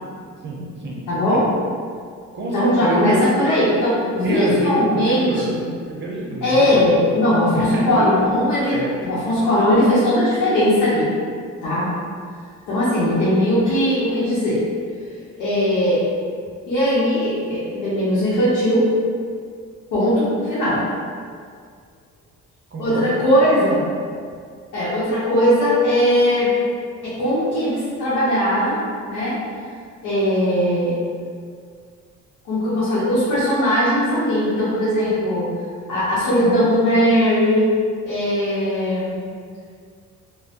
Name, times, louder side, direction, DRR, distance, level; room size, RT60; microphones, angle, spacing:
voice 1, 0.4-1.4 2.3-3.2 4.2-5.5 5.9-7.2 7.5-8.1 8.7-8.9 9.4-9.5 22.7-23.1, right 1 dB, 40° right, -3 dB, 0.6 m, -26 dB
voice 2, 1.1-1.4 2.5-5.6 6.4-11.1 11.6-11.9 12.7-14.6 15.4-16.0 16.7-18.8 19.9-20.8 22.8-23.9 24.7-26.5 27.0-28.8 29.1-29.4 30.0-31.0 32.4-35.5 35.9-37.7 38.0-39.2, equal, 85° left, -11 dB, 0.8 m, -19 dB
3.0 x 2.1 x 2.8 m, 2.1 s
cardioid pair, 90°, 30 cm